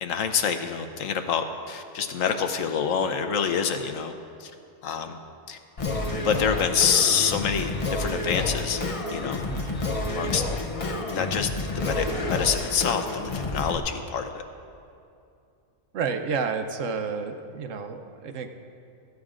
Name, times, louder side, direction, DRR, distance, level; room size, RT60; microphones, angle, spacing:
voice 1, 0.0-4.1 4.4-4.5 4.8-5.2 5.5-5.6 6.1-8.8 9.1-9.4 10.1-10.4 11.1-13.1 13.3-14.4, left 7 dB, 85° left, 7 dB, 1.2 m, -26 dB
Singing, 5.8-13.8, left 2 dB, 35° left, 0.6 m, -29 dB
voice 2, 9.5-9.8 15.9-18.5, right 5 dB, 80° right, 7 dB, 1.1 m, -30 dB
16.0 x 14.5 x 2.5 m, 2.5 s
omnidirectional pair, 1.3 m